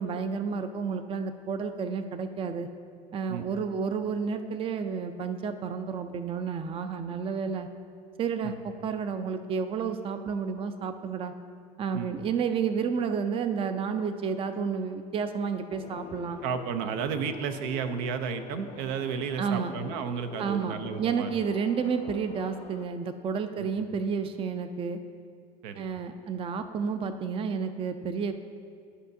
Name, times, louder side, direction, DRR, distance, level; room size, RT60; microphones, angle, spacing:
voice 1, 0.0-2.7 3.1-7.7 8.2-11.3 11.8-16.4 19.4-19.7 20.4-25.0 25.8-28.3, right 6 dB, 25° right, 9 dB, 0.4 m, -31 dB
sound 1, 15.7-22.9, left 8 dB, 35° left, 0.4 m, -45 dB
voice 2, 16.4-21.3 23.6-23.7 25.6-25.8, right 6 dB, 75° right, 9 dB, 0.6 m, -32 dB
12.5 x 5.5 x 2.7 m, 2.3 s
supercardioid pair, 105°, 20 cm